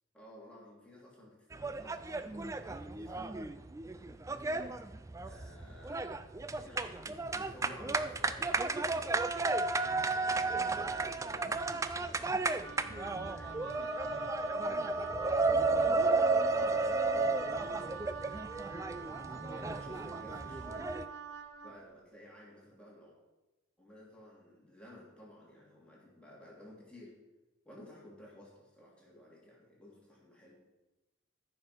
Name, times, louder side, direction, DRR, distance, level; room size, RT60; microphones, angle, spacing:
voice 1, 0.1-3.5 5.2-6.2 6.6-9.0 10.2-10.4 10.8-11.0 13.0-13.5 13.9-14.4 15.2-18.3 19.4-20.9 21.6-23.2 23.8-27.1 27.6-30.6, left 1 dB, 5° left, -5 dB, 2.7 m, -54 dB
sound 1, 1.5-21.1, right 3 dB, 15° right, 0.3 m, -33 dB
voice 2, 9.8-11.9 12.7-13.2 13.6-14.7, equal, 50° right, -2 dB, 2.1 m, -54 dB
Wind instrument woodwind instrument, 12.6-21.8, right 6 dB, 85° right, 1.0 m, -45 dB
13.5 x 6.1 x 5.1 m, 1.1 s
head